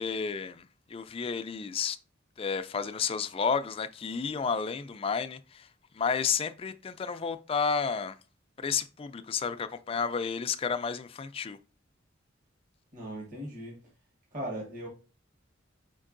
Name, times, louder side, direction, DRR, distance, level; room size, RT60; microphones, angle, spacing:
voice 1, 0.0-2.0 2.4-5.7 5.9-8.1 8.6-11.6, left 6 dB, 30° left, 0.3 m, -31 dB
voice 2, 12.9-13.8 14.3-14.9, right 1 dB, 40° right, 1.3 m, -38 dB
4.5 x 4.4 x 2.5 m
head